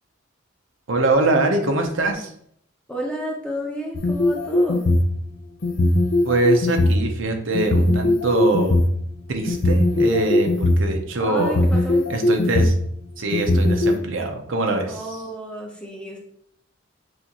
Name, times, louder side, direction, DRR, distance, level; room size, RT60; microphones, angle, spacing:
voice 1, 0.9-2.3 6.2-8.9 9.3-11.6 12.1-12.7 13.2-15.0, right 2 dB, 70° right, 4 dB, 0.7 m, -23 dB
voice 2, 2.9-4.8 11.2-12.1 14.9-16.2, equal, 5° left, -2 dB, 0.7 m, -31 dB
sound 1, 4.0-5.1 5.6-6.9 7.5-8.8 9.5-10.9 11.4-12.8 13.3-13.9, left 1 dB, 70° left, 0.6 m, -19 dB
6.2 x 2.5 x 2.9 m, 0.68 s
head